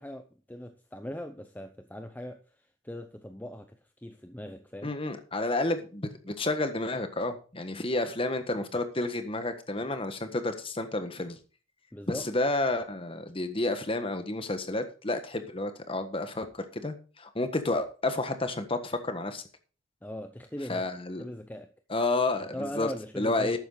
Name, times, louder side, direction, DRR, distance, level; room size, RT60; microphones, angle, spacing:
voice 1, 0.0-4.9 11.9-12.3 20.0-20.9 21.2-21.7 22.4-23.6, equal, 10° left, 7 dB, 0.6 m, -40 dB
voice 2, 4.8-11.4 12.1-19.4 20.7-21.2 21.9-22.9 23.2-23.6, left 2 dB, 25° left, 8 dB, 1.4 m, -30 dB
12.0 x 9.1 x 3.9 m, 0.35 s
head